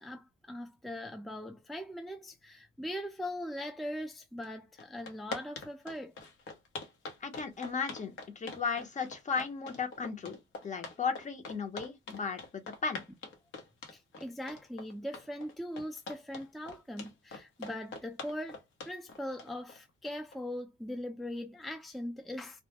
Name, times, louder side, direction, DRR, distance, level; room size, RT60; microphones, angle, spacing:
voice 1, 0.0-6.1 13.9-22.6, left 1 dB, ahead, 0.4 m, -40 dB
sound 1, 4.4-4.5 4.8-20.4, left 3 dB, 80° left, 0.8 m, -44 dB
voice 2, 7.2-13.0, left 5 dB, 40° left, 0.7 m, -36 dB
2.2 x 2.0 x 2.8 m
cardioid pair, 90°, 20 cm